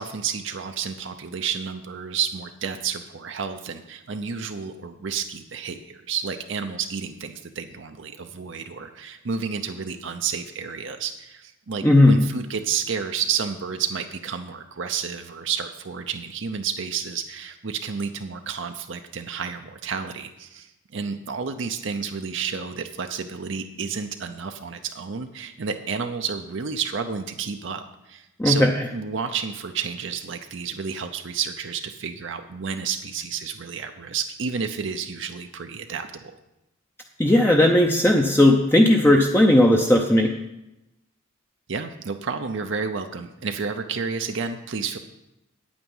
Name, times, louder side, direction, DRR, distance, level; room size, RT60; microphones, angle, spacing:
voice 1, 0.0-27.8 28.1-36.4 41.7-45.0, right 6 dB, 60° right, 6 dB, 0.6 m, -31 dB
voice 2, 11.8-12.3 28.4-28.7 37.2-40.3, left 1 dB, 10° left, 1 dB, 0.6 m, -16 dB
9.2 x 8.8 x 5.5 m, 0.93 s
head